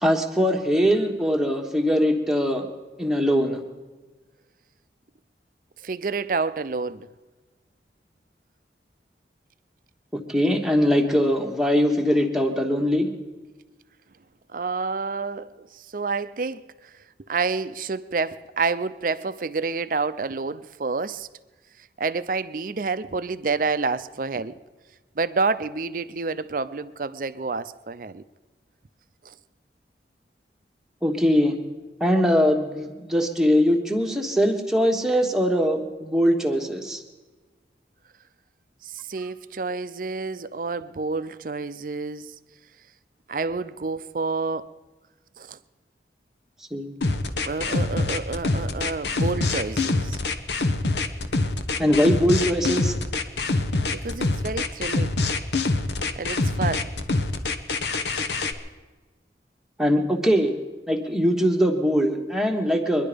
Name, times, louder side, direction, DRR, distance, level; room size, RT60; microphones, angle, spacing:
voice 1, 0.0-2.7 3.0-3.6 10.1-13.1 31.0-31.6 32.0-37.0 46.7-47.0 51.8-52.9 59.8-60.5 60.9-63.1, equal, 5° right, 1.2 m, -21 dB
voice 2, 5.8-7.1 14.5-16.6 17.3-21.3 22.0-24.6 25.2-28.2 29.2-29.3 38.8-42.3 43.3-44.7 45.4-45.6 47.5-50.2 53.9-55.2 56.2-56.9, right 4 dB, 50° right, 0.5 m, -29 dB
sound 1, 47.0-58.5, left 3 dB, 75° left, 1.0 m, -25 dB
23.5 x 11.0 x 5.1 m
head